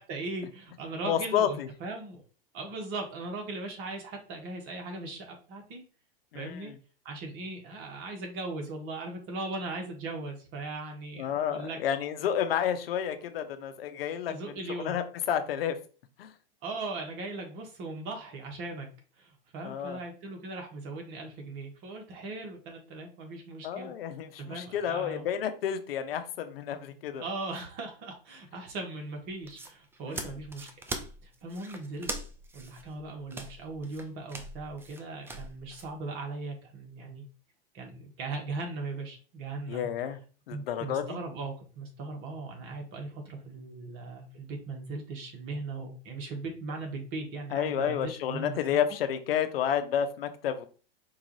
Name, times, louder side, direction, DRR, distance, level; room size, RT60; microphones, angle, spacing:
voice 1, 0.0-2.2 2.5-5.8 6.3-6.7 7.0-11.8 14.3-15.0 16.6-18.9 19.2-23.9 24.4-25.3 27.2-30.7 31.2-32.1 32.5-37.2 37.7-39.9 40.5-48.8, right 3 dB, 45° right, 2 dB, 1.4 m, -39 dB
voice 2, 1.0-1.7 6.3-6.7 11.2-14.3 14.8-15.8 16.2-16.3 19.6-20.0 23.6-27.2 30.1-30.3 39.7-40.2 40.5-41.2 47.5-50.7, left 9 dB, 75° left, 9 dB, 0.7 m, -30 dB
sound 1, 29.4-35.9, right 2 dB, 10° right, 0.3 m, -41 dB
4.5 x 2.5 x 3.1 m, 0.38 s
hypercardioid pair, 115°, 29 cm